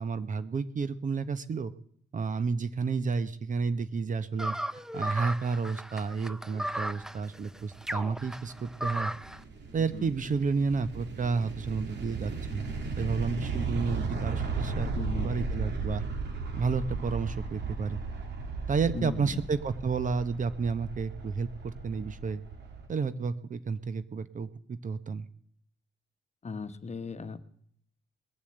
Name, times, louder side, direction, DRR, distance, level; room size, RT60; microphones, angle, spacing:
voice 1, 0.0-1.7 2.1-4.6 4.9-9.1 9.7-12.6 13.0-14.9 15.2-16.0 16.6-18.0 18.7-22.4 22.9-25.3, right 5 dB, 40° right, 13 dB, 0.9 m, -31 dB
sound 1, 4.4-9.4, equal, 5° right, 0.5 m, -36 dB
sound 2, 7.4-22.9, right 4 dB, 60° right, 2.4 m, -36 dB
voice 2, 14.9-15.4 18.9-19.3 26.4-27.4, left 4 dB, 35° left, 10 dB, 1.2 m, -37 dB
20.5 x 7.1 x 7.9 m, 0.65 s
cardioid pair, 90°, 20 cm